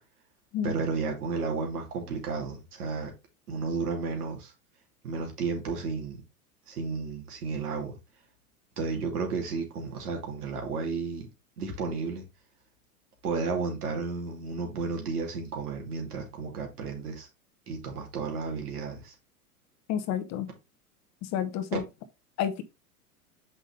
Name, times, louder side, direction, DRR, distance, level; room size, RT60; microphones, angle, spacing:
voice 1, 0.6-3.1 3.5-4.5 5.0-6.2 6.7-8.0 8.8-11.3 11.6-12.2 13.2-17.3 17.7-19.1 21.7-21.8, right 4 dB, 75° right, 2.9 m, -32 dB
voice 2, 19.9-20.5 21.2-21.8 22.4-22.6, left 9 dB, 35° left, 1.1 m, -30 dB
6.2 x 5.5 x 3.3 m
hypercardioid pair, 100°, 45 cm